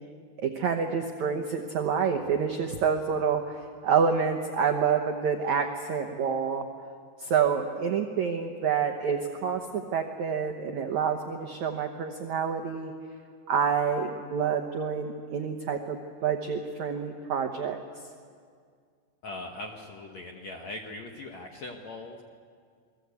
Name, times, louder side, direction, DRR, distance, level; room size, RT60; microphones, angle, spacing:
voice 1, 0.4-6.7 7.2-12.9 13.5-17.8, right 6 dB, 85° right, 4 dB, 1.6 m, -28 dB
voice 2, 19.2-22.2, left 2 dB, 65° left, 2 dB, 1.7 m, -40 dB
28.5 x 21.0 x 8.3 m, 2.1 s
omnidirectional pair, 5.0 m